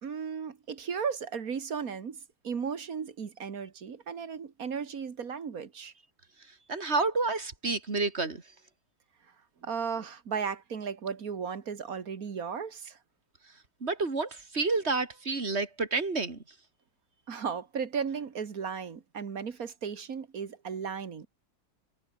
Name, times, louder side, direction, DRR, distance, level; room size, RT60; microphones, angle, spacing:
voice 1, 0.0-5.9 9.6-13.0 17.3-21.3, right 6 dB, 55° right, 2.0 m, -35 dB
voice 2, 6.7-8.4 13.8-16.4, right 3 dB, 35° right, 3.1 m, -29 dB
omnidirectional pair, 1.9 m